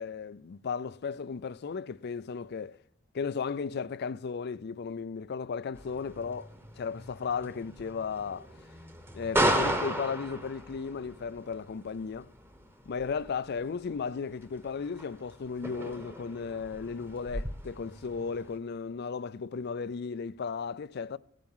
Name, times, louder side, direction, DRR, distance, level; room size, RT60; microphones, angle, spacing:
voice 1, 0.0-2.8 3.1-6.5 6.8-8.5 9.1-12.3 12.9-21.2, left 5 dB, 50° left, 0.4 m, -35 dB
sound 1, 5.7-18.6, right 1 dB, 10° right, 1.1 m, -36 dB
16.0 x 9.1 x 5.5 m
head